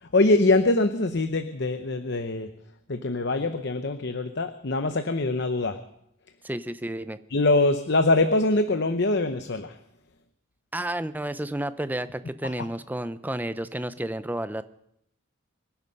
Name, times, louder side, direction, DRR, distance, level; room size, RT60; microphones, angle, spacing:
voice 1, 0.0-2.5 2.9-5.8 7.3-9.8 12.4-12.7, left 2 dB, 55° left, 9 dB, 0.8 m, -23 dB
voice 2, 6.4-7.2 10.7-14.6, right 1 dB, 10° right, 13 dB, 0.6 m, -31 dB
24.5 x 11.0 x 5.4 m, 0.76 s
head